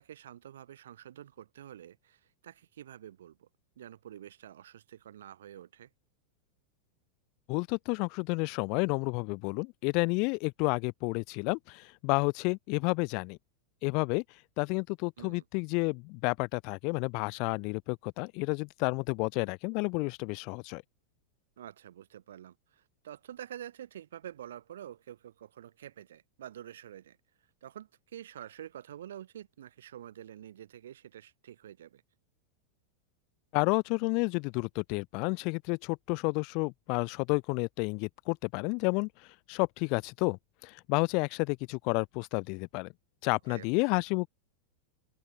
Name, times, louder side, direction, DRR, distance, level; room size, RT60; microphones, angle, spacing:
voice 1, 0.0-3.5 3.8-5.9 15.2-15.4 21.6-27.2 27.6-32.0 43.5-43.7, right 11 dB, 70° right, 2.6 m, -48 dB
voice 2, 7.5-13.4 13.8-14.2 14.6-20.8 33.5-39.1 39.5-42.9 43.2-44.3, left 32 dB, 50° left, 0.8 m, -30 dB
open air
hypercardioid pair, 90°, 0 cm